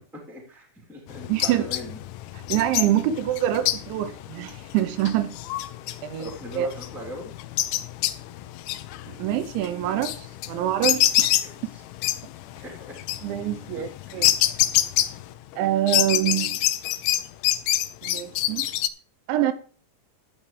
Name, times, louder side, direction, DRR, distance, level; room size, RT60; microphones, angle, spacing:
voice 1, 0.1-2.0 6.2-7.3 11.4-11.8 12.6-13.0 13.7-14.4, equal, ahead, 1.9 m, -40 dB
sound 1, 1.1-15.6 15.9-18.9, left 15 dB, 85° left, 3.0 m, -27 dB
voice 2, 1.3-1.7 2.5-5.3 6.0-6.7 9.1-11.4 13.2-14.3 15.6-16.6 18.0-18.7 19.3-19.5, right 12 dB, 85° right, 3.1 m, -25 dB
13.0 x 8.6 x 3.2 m
omnidirectional pair, 5.3 m